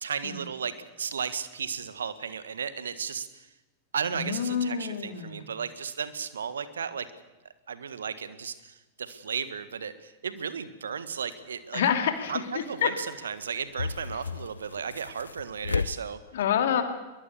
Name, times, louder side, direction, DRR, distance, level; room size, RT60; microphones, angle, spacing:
voice 1, 0.0-3.5 3.9-7.1 7.7-11.8 12.3-16.2, right 7 dB, 70° right, 13 dB, 1.5 m, -34 dB
voice 2, 4.1-5.5 11.7-12.9 16.3-16.8, left 8 dB, 60° left, 7 dB, 2.9 m, -27 dB
sound 1, 11.3-11.4 12.8-12.9 13.1-13.2 13.4-15.9, left 5 dB, 75° left, 0.6 m, -33 dB
23.0 x 21.5 x 7.1 m, 1.1 s
figure-of-eight pair, 90°, 0 cm